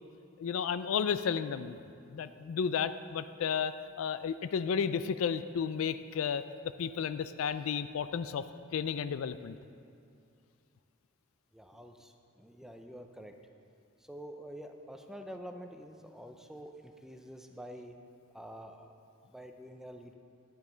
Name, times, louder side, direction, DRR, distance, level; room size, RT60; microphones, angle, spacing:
voice 1, 0.4-1.8 2.1-6.4 6.8-8.4 8.7-9.6, left 7 dB, 75° left, 12 dB, 0.3 m, -32 dB
voice 2, 11.5-13.4 14.1-17.9 18.3-18.9 19.3-20.1, equal, ahead, 5 dB, 0.5 m, -47 dB
10.0 x 9.8 x 3.9 m, 2.5 s
head